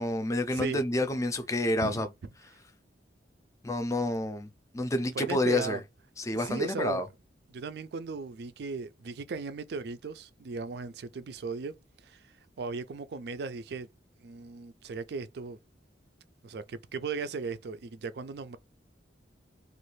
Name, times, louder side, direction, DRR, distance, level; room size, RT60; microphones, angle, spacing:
voice 1, 0.0-2.1 3.6-4.5 4.7-5.8 6.2-7.1, left 1 dB, 20° left, 0.4 m, -29 dB
voice 2, 5.1-5.8 6.3-7.0 7.5-11.8 12.0-12.2 12.6-13.9 14.2-15.6 16.4-18.6, right 4 dB, 60° right, 0.4 m, -37 dB
3.1 x 2.4 x 3.1 m
head